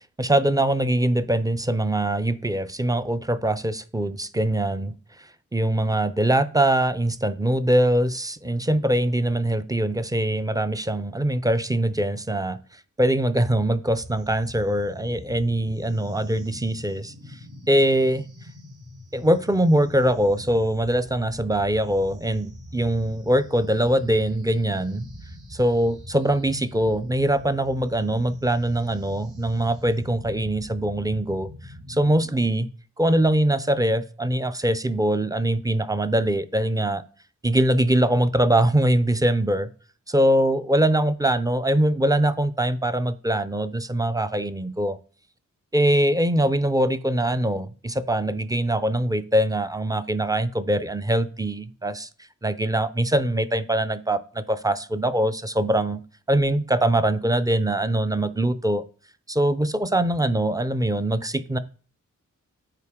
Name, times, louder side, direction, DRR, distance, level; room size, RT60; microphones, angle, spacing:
voice 1, 0.2-5.0 5.5-12.6 13.0-17.1 17.7-18.3 19.1-25.0 25.5-32.7 33.0-37.0 37.4-39.7 40.1-45.0 45.7-52.1 52.4-56.0 56.3-58.8 59.3-61.6, right 1 dB, 10° right, 0.4 m, -22 dB
sound 1, 14.0-32.5, left 1 dB, 65° right, 2.7 m, -43 dB
8.9 x 4.1 x 3.6 m
wide cardioid pair, 110°, 31 cm